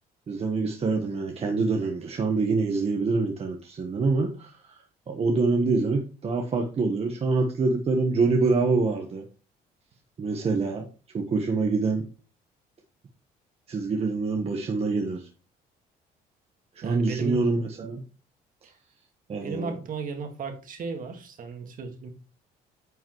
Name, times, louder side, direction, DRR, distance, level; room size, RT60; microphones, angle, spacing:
voice 1, 0.3-4.6 5.1-9.2 10.2-10.9 11.1-12.1 13.7-15.3 16.8-18.0 19.3-19.8, right 3 dB, 35° right, 3 dB, 1.2 m, -25 dB
voice 2, 16.8-17.4 18.6-18.7 19.4-22.1, right 5 dB, 55° right, 5 dB, 1.8 m, -34 dB
9.2 x 5.6 x 3.1 m, 0.35 s
cardioid pair, 110°, 17 cm